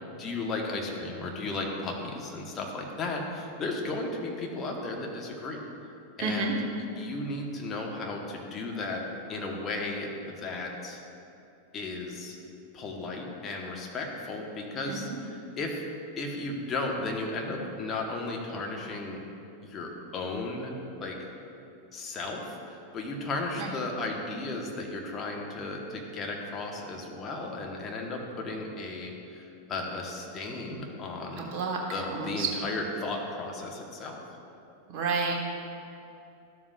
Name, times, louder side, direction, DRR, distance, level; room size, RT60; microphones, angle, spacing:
voice 1, 0.1-5.6 6.2-9.0 9.3-10.1 10.4-11.0 11.7-12.3 12.7-15.8 16.2-19.2 19.6-20.7 21.0-21.2 21.9-31.5 31.9-34.2, left 2 dB, 25° left, 0 dB, 1.2 m, -35 dB
voice 2, 6.2-6.5 14.8-15.2 23.6-23.8 31.4-32.5 34.9-35.3, right 4 dB, 40° right, -1 dB, 1.4 m, -30 dB
13.0 x 7.3 x 2.5 m, 2.8 s
figure-of-eight pair, 90°, 0 cm